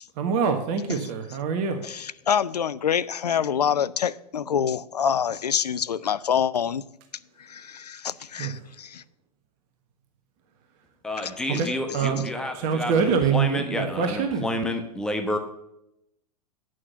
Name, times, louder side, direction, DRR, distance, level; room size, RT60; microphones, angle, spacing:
voice 1, 0.2-1.8 8.4-8.5 11.5-11.7 11.9-12.2 12.6-14.5, right 6 dB, 40° right, 1.2 m, -24 dB
voice 2, 1.8-6.8 7.4-9.0, left 8 dB, 75° left, 0.5 m, -26 dB
voice 3, 11.0-15.4, left 1 dB, 5° left, 1.0 m, -30 dB
9.9 x 6.3 x 5.7 m
figure-of-eight pair, 100°, 20 cm